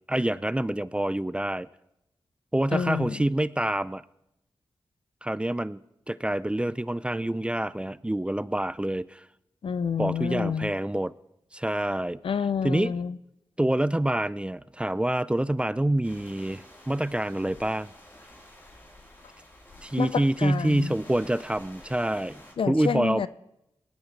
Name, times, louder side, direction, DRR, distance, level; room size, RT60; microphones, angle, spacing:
voice 1, 0.1-1.7 2.5-4.0 5.2-5.8 6.1-9.3 10.0-11.1 11.5-12.2 12.6-12.9 13.6-17.9 19.8-23.2, right 1 dB, 10° right, 0.4 m, -27 dB
voice 2, 2.7-3.3 9.6-10.7 12.2-13.2 20.0-20.9 22.6-23.3, left 6 dB, 75° left, 0.5 m, -28 dB
sound 1, 16.0-22.5, left 1 dB, 25° left, 4.0 m, -50 dB
19.0 x 12.5 x 3.3 m
cardioid pair, 50°, 9 cm